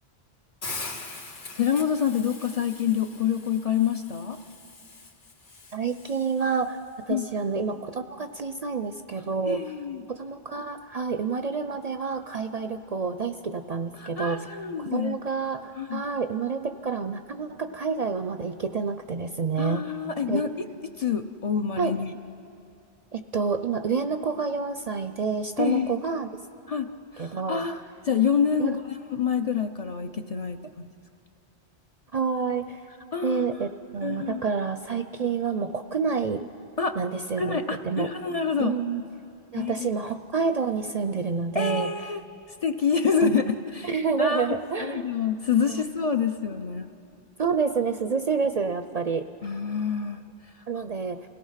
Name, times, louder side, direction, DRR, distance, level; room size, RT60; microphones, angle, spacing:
Hiss, 0.6-6.7, left 3 dB, 90° left, 2.2 m, -42 dB
voice 1, 1.5-4.4 7.1-7.3 9.5-10.0 14.0-15.2 15.8-16.0 19.6-20.5 21.0-22.1 25.6-26.0 26.7-26.9 27.1-28.8 29.1-30.9 33.1-33.4 34.0-34.4 36.8-37.0 37.4-38.7 39.6-39.9 41.5-42.2 42.6-43.9 44.2-44.5 44.8-46.9 49.4-50.2, left 7 dB, 40° left, 6 dB, 0.6 m, -27 dB
voice 2, 5.7-6.8 7.1-9.6 10.1-14.5 14.9-19.8 20.3-20.5 21.8-21.9 23.1-26.3 27.2-27.6 28.6-28.8 32.1-32.8 33.2-36.5 37.0-37.6 37.8-38.1 38.6-39.0 39.5-41.9 43.2-43.4 43.8-45.0 45.5-45.8 47.4-49.2 50.7-51.2, right 5 dB, 50° right, 9 dB, 0.5 m, -28 dB
28.0 x 17.5 x 5.7 m, 2.7 s
omnidirectional pair, 1.1 m